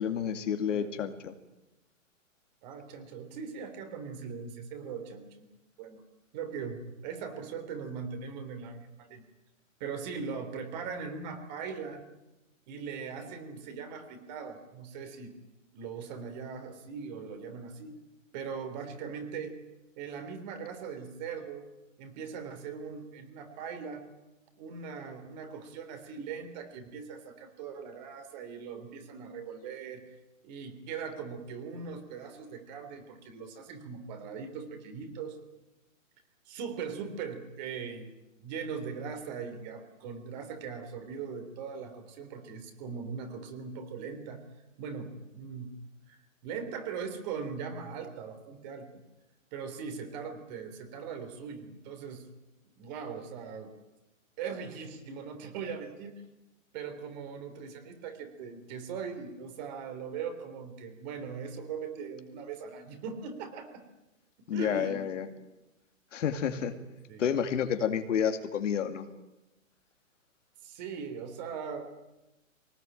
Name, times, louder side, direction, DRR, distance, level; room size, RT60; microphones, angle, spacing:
voice 1, 0.0-1.3 64.5-65.3 66.1-66.7 67.2-69.1, left 8 dB, 65° left, 7 dB, 2.4 m, -30 dB
voice 2, 2.6-5.5 5.8-6.0 6.3-9.2 9.8-12.0 12.7-15.3 15.7-18.0 18.3-19.5 20.0-21.7 22.0-24.0 24.6-30.0 30.4-35.4 36.4-38.1 38.4-44.4 44.8-45.7 46.1-49.0 49.5-52.2 52.8-53.7 54.4-56.2 56.7-63.8 64.4-65.1 67.1-67.3 70.6-71.8, right 6 dB, 30° right, 7 dB, 3.5 m, -40 dB
23.0 x 19.0 x 9.1 m, 0.99 s
hypercardioid pair, 160°, 40 cm